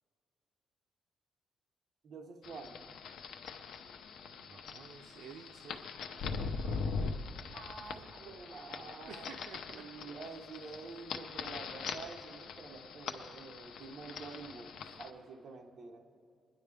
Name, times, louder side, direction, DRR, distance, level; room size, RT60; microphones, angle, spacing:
voice 1, 2.0-2.8 7.5-9.4 9.7-16.0, right 4 dB, 45° right, 2 dB, 1.2 m, -48 dB
sound 1, 2.4-15.1, left 5 dB, 75° left, 0.8 m, -42 dB
voice 2, 4.2-7.3 9.0-9.9, right 7 dB, 70° right, 4 dB, 0.6 m, -53 dB
22.5 x 10.5 x 3.5 m, 2.4 s
cardioid pair, 155°, 0 cm